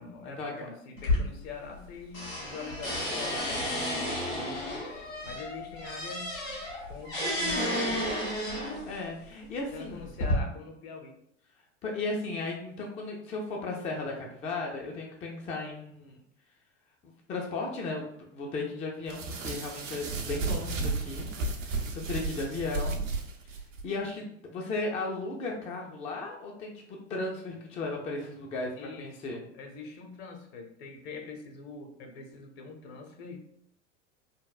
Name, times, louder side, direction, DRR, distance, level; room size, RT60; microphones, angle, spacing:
voice 1, 0.0-6.3 6.9-8.1 9.7-11.2 28.7-33.4, left 4 dB, 55° left, 4 dB, 0.7 m, -44 dB
sound 1, 1.0-1.9 2.1-9.0 9.7-10.3, left 1 dB, 90° left, 1.0 m, -32 dB
voice 2, 8.9-10.1 11.8-16.2 17.0-18.0 18.3-21.3 21.6-23.0 23.4-23.5 23.8-26.7 27.1-29.4, left 3 dB, 20° left, 0 dB, 0.3 m, -35 dB
sound 2, 19.1-23.8, right 3 dB, 75° right, 0.6 m, -33 dB
3.3 x 2.1 x 2.3 m, 0.69 s
figure-of-eight pair, 80°, 39 cm